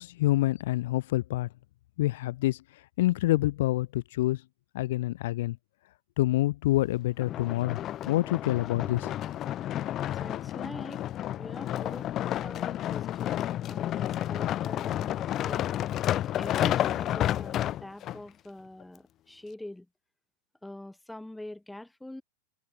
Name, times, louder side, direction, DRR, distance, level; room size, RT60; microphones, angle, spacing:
voice 1, 0.0-1.5 2.0-4.4 4.7-5.6 6.2-7.8 8.1-9.1, left 16 dB, 55° left, 0.8 m, -27 dB
sound 1, 7.2-18.2 18.8-18.9, left 12 dB, 30° left, 1.4 m, -31 dB
voice 2, 10.2-11.0 11.4-12.1 12.4-15.8 16.4-19.9 20.6-22.2, left 1 dB, 5° left, 1.5 m, -44 dB
figure-of-eight pair, 90°, 0 cm